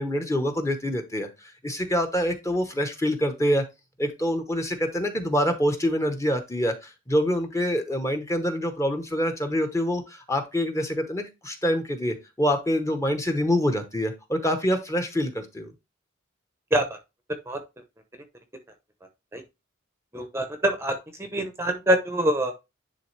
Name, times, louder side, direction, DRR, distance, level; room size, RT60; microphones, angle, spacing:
voice 1, 0.0-3.6 4.0-15.7, equal, 15° left, 6 dB, 0.9 m, -26 dB
voice 2, 20.1-20.9 21.2-22.5, right 1 dB, 15° right, 6 dB, 0.8 m, -24 dB
10.5 x 3.4 x 3.2 m, 0.24 s
head